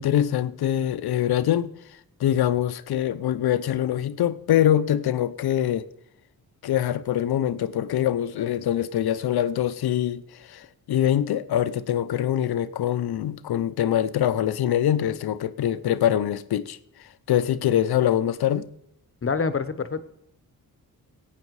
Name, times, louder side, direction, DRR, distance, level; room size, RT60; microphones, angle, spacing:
voice 1, 0.0-1.7 2.2-5.9 6.6-16.8 17.3-18.7, left 11 dB, 80° left, 0.7 m, -24 dB
voice 2, 19.2-20.0, left 5 dB, 35° left, 1.0 m, -26 dB
17.0 x 8.5 x 4.8 m
cardioid pair, 75°, 38 cm